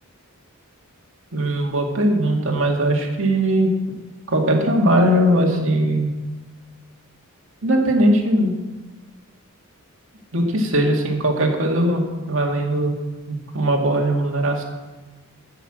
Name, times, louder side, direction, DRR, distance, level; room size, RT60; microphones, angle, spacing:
voice 1, 1.3-3.7 4.3-6.1 7.6-8.5 10.3-13.0 13.3-14.6, right 1 dB, 60° right, 1 dB, 2.0 m, -19 dB
13.5 x 5.8 x 7.6 m, 1.2 s
head